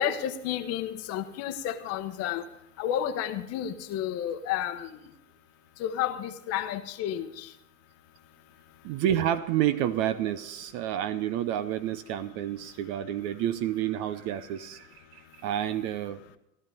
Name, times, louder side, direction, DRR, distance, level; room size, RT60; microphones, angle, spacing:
voice 1, 0.0-2.4 2.8-4.9 5.8-7.3, left 10 dB, 35° left, 1.1 m, -31 dB
voice 2, 8.8-16.2, right 11 dB, 35° right, 0.6 m, -29 dB
15.5 x 12.0 x 5.4 m
hypercardioid pair, 105°, 44 cm